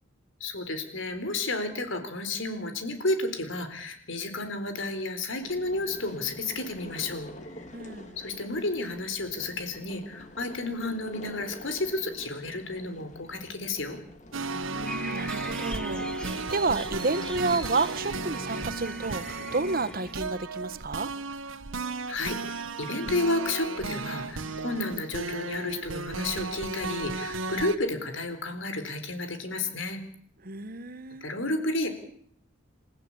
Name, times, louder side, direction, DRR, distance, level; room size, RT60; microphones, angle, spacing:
voice 1, 0.4-7.3 7.5-7.7 8.2-14.0 22.1-30.0 31.2-31.9, left 2 dB, 75° left, 8 dB, 4.2 m, -31 dB
sound 1, 5.4-19.9, left 1 dB, 35° left, 2.5 m, -47 dB
voice 2, 7.7-8.2 14.5-21.1 30.4-31.3, right 3 dB, 45° right, 14 dB, 1.1 m, -31 dB
sound 2, 14.3-27.8, right 3 dB, 85° right, 1.3 m, -35 dB
sound 3, 14.8-20.1, left 1 dB, 5° left, 1.7 m, -42 dB
29.0 x 15.0 x 8.7 m, 0.65 s
head